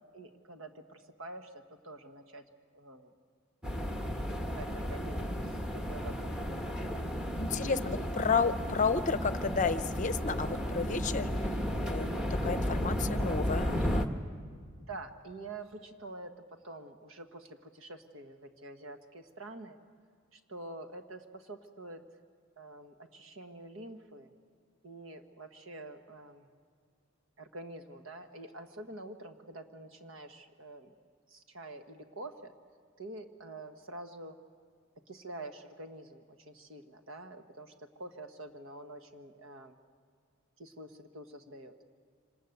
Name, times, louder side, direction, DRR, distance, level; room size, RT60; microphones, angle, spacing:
voice 1, 0.1-2.5 2.7-3.1 4.5-5.4 5.7-6.3 7.5-8.1 14.8-19.8 20.3-22.0 22.6-24.3 24.8-26.5 27.4-30.9 31.3-32.5 33.0-34.4 35.1-39.8 40.6-41.7, right 2 dB, 70° right, 6 dB, 1.5 m, -47 dB
sound 1, 3.6-14.1, equal, 5° right, 1.1 m, -33 dB
voice 2, 7.4-11.3 11.8-12.2 12.4-14.1, left 5 dB, 35° left, 12 dB, 0.7 m, -31 dB
26.0 x 19.5 x 8.0 m, 2.1 s
head